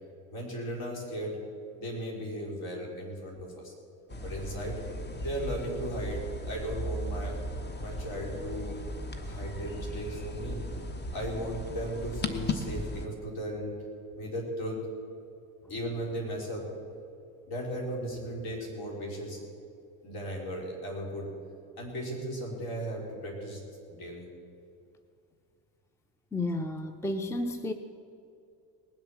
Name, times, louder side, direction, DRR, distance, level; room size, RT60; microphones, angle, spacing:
voice 1, 0.3-1.4 1.7-3.7 4.2-4.8 5.2-7.4 7.7-8.8 9.2-10.6 11.1-13.8 14.1-14.8 15.7-16.7 17.5-19.4 20.0-21.3 21.8-23.6 23.9-24.3, equal, 55° left, -1 dB, 4.8 m, -36 dB
sound 1, 4.1-13.1, left 1 dB, 25° left, 1.2 m, -37 dB
voice 2, 26.3-27.7, left 2 dB, 5° left, 9 dB, 0.7 m, -32 dB
19.5 x 8.0 x 7.3 m, 2.5 s
supercardioid pair, 90°, 43 cm